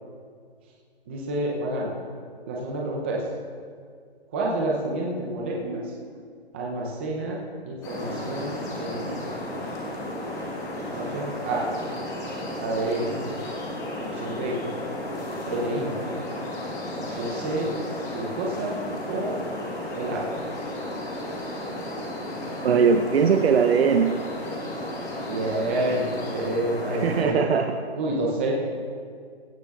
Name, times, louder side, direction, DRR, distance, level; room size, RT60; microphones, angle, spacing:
voice 1, 1.1-1.9 2.5-3.3 4.3-5.9 6.5-7.4 7.7-9.4 11.0-11.7 12.6-13.2 14.0-14.6 15.5-16.0 17.1-17.7 18.1-18.8 19.1-19.4 19.9-20.4 25.3-26.1 26.3-27.5 27.9-28.5, right 2 dB, 10° right, -2 dB, 0.5 m, -29 dB
sound 1, 7.8-27.2, left 1 dB, 10° left, 1.3 m, -33 dB
voice 2, 22.6-24.1 27.0-27.8, right 6 dB, 65° right, 5 dB, 0.7 m, -20 dB
16.5 x 12.5 x 2.3 m, 2.1 s
hypercardioid pair, 155°, 33 cm